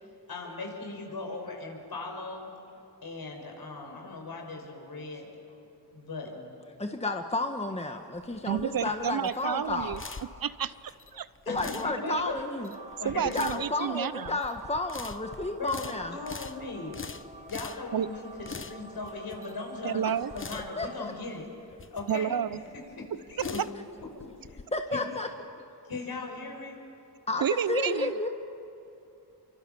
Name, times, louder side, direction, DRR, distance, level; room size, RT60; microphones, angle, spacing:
voice 1, 0.3-2.5 3.0-5.3 5.9-6.5 8.8-8.9 9.8-9.9 11.5-12.4 13.0-13.6 15.6-17.0 17.5-21.4 21.9-22.4 23.3-23.6 24.2-24.3 24.9-25.0 25.8-26.8, left 3 dB, 60° left, 1 dB, 6.5 m, -38 dB
voice 2, 6.8-10.0 11.5-12.7 13.3-16.2 20.8-21.1 24.7-25.3 27.3-28.3, left 2 dB, 15° left, 5 dB, 1.5 m, -31 dB
sound 1, 8.1-24.6, left 5 dB, 30° left, 1.0 m, -45 dB
voice 3, 8.5-10.0 10.4-11.3 12.1-12.2 13.0-14.4 17.9-18.1 19.8-20.3 22.1-22.6 23.1-23.2 27.4-28.2, right 9 dB, 60° right, 16 dB, 0.7 m, -30 dB
sound 2, 12.7-21.0, right 2 dB, 15° right, 1.9 m, -49 dB
27.0 x 24.5 x 7.2 m, 2.8 s
cardioid pair, 65°, 40 cm